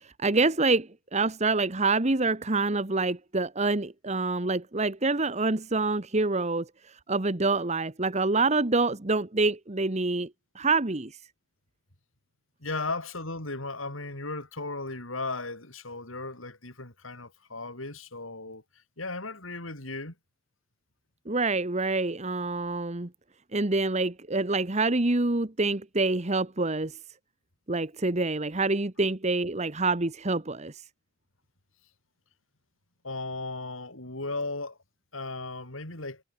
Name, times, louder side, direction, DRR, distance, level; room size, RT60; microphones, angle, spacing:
voice 1, 0.0-10.3 10.5-11.1 21.3-23.1 23.5-27.0 27.7-30.8, right 3 dB, 35° right, 1.3 m, -26 dB
voice 2, 12.6-18.6 19.0-20.1 33.0-34.8 35.1-36.2, left 3 dB, 90° left, 6.8 m, -36 dB
head